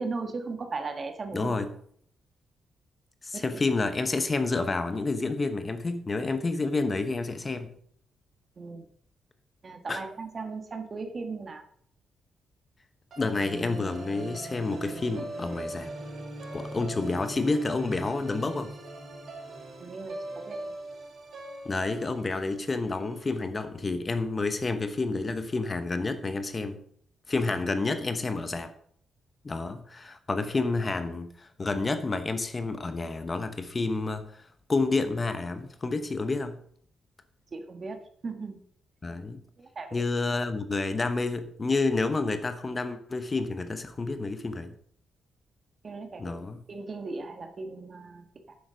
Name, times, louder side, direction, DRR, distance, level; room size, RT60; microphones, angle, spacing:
voice 1, 0.0-1.5 3.3-3.4 8.6-8.9 9.6-11.6 19.8-20.7 37.5-38.6 39.6-40.1 45.8-46.4 46.7-48.6, right 4 dB, 40° right, 1.5 m, -37 dB
voice 2, 1.3-1.7 3.2-7.8 9.9-10.0 13.2-15.9 16.5-18.8 21.6-26.8 27.3-28.7 29.4-36.6 39.0-39.4 39.9-44.7 46.2-46.6, left 3 dB, 30° left, 0.9 m, -29 dB
sound 1, 13.1-23.4, right 1 dB, 55° right, 4.1 m, -41 dB
9.5 x 7.2 x 5.1 m
cardioid pair, 105°, 0 cm